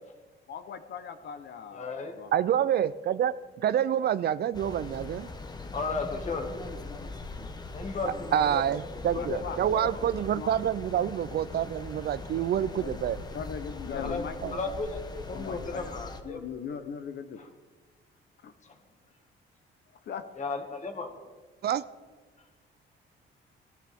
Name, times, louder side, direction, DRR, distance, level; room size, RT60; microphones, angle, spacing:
voice 1, 0.5-2.3 9.2-9.6 10.3-10.5 12.4-13.0 13.3-14.7 15.3-15.9 16.2-17.4 18.4-18.5 20.1-20.2, left 7 dB, 55° left, 9 dB, 0.9 m, -39 dB
voice 2, 1.7-2.2 5.7-6.5 7.7-8.6 9.1-9.9 14.0-14.2 14.5-16.4 17.4-17.5 18.6-18.8 20.4-21.1, left 3 dB, 35° left, 5 dB, 1.8 m, -34 dB
voice 3, 2.3-3.3 3.6-5.3 8.1-13.2 14.4-14.6 21.6-21.8, right 10 dB, 50° right, 16 dB, 0.4 m, -27 dB
sound 1, 4.5-16.2, left 3 dB, 20° left, 0.9 m, -41 dB
20.0 x 14.0 x 3.6 m, 1.3 s
cardioid pair, 155°, 21 cm